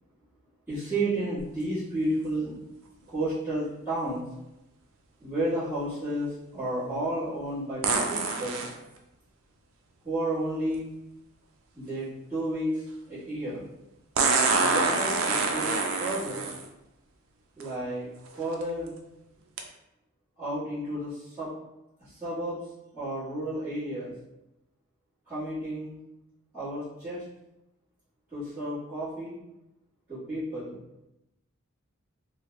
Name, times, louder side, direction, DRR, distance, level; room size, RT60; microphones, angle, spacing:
voice 1, 0.7-2.6 3.1-4.2 5.2-8.7 10.0-10.9 11.7-13.7 14.5-15.7 16.0-16.5 17.6-18.1 18.4-18.9 20.4-21.5 22.0-22.6 22.9-24.1 25.3-26.0 26.5-27.2 28.3-29.3 30.1-30.8, right 1 dB, 5° right, -19 dB, 1.4 m, -32 dB
sound 1, 1.4-1.5 7.8-8.7 10.7-10.8 14.2-16.6 17.6-17.7 18.3-18.6 19.6-19.7, right 4 dB, 75° right, 0.4 m, -26 dB
3.2 x 2.2 x 3.1 m, 0.91 s
head